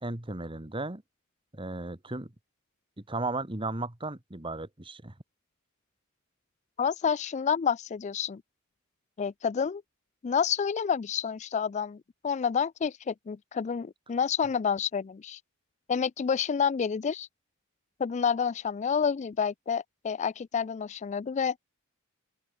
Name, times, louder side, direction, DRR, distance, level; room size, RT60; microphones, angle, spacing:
voice 1, 0.0-1.0 1.5-2.3 3.0-5.1, right 2 dB, 25° right, 1.7 m, -35 dB
voice 2, 6.8-8.4 9.2-9.8 10.2-15.4 15.9-17.3 18.0-21.6, left 6 dB, 35° left, 0.3 m, -29 dB
head